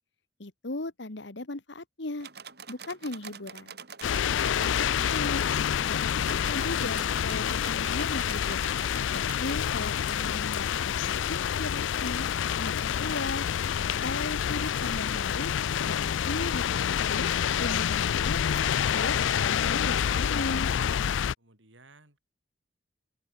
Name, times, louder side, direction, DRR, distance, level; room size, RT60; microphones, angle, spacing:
voice 1, 0.4-2.3 2.7-3.7 4.9-5.4 5.8-8.6 9.1-12.3 12.6-13.4 13.8-15.5 15.8-17.3 17.6-20.7, left 2 dB, 70° left, 1.6 m, -37 dB
sound 1, 2.2-4.7 6.2-9.6, right 6 dB, 55° right, 4.1 m, -46 dB
sound 2, 4.0-21.3, left 8 dB, 85° left, 0.4 m, -28 dB
voice 2, 21.4-22.2, right 2 dB, 85° right, 7.5 m, -57 dB
open air
head